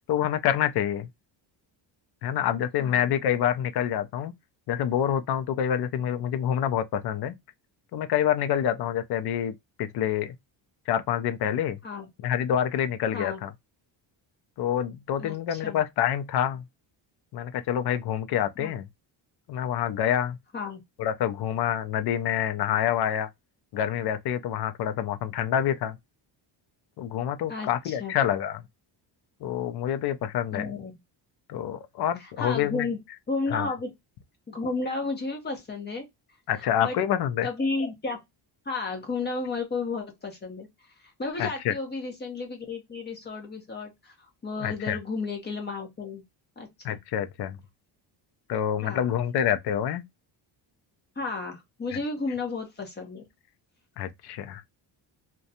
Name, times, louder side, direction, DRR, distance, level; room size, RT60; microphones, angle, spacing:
voice 1, 0.1-1.1 2.2-4.3 4.7-7.3 7.9-10.3 10.9-11.8 12.2-13.5 14.6-16.6 17.3-18.8 19.5-20.4 21.0-23.3 23.7-26.0 27.0-28.6 29.4-30.7 31.5-32.9 33.5-33.7 36.5-37.5 41.4-41.7 44.6-45.0 46.8-47.6 48.5-50.0 54.0-54.7, left 10 dB, 55° left, 0.5 m, -27 dB
voice 2, 15.2-15.8 18.6-18.7 20.5-20.8 27.5-28.1 30.5-30.9 32.2-33.0 33.3-33.9 34.5-36.1 36.8-37.0 37.4-38.2 38.7-40.7 41.2-44.1 44.4-46.2 46.6-47.0 48.8-49.1 51.2-53.2, left 3 dB, 20° left, 0.8 m, -32 dB
2.6 x 2.2 x 2.6 m
cardioid pair, 170°, 46 cm